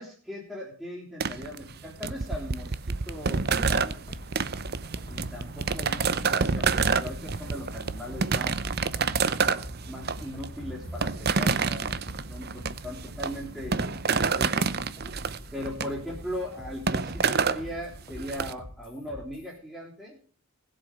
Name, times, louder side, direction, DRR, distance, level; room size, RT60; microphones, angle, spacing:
voice 1, 0.0-4.0 5.1-8.6 9.9-14.7 15.5-20.2, equal, 5° right, -6 dB, 3.4 m, -39 dB
sound 1, 1.2-18.5, right 5 dB, 45° right, 0.7 m, -28 dB
sound 2, 3.8-19.6, left 1 dB, 20° left, 2.7 m, -45 dB
20.0 x 7.8 x 5.3 m, 0.42 s
head